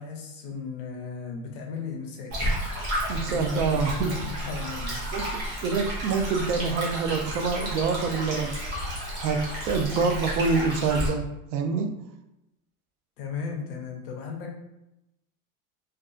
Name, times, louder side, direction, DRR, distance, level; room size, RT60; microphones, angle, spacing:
voice 1, 0.0-2.3 3.2-5.4 13.2-14.5, left 5 dB, 40° left, 1 dB, 0.4 m, -36 dB
Stream, 2.3-11.1, equal, 25° right, 0.7 m, -31 dB
voice 2, 3.1-4.3 5.1-5.3 5.6-8.6 9.2-11.9, right 5 dB, 70° right, 6 dB, 0.5 m, -26 dB
2.6 x 2.2 x 2.3 m, 0.90 s
supercardioid pair, 165°, 45 cm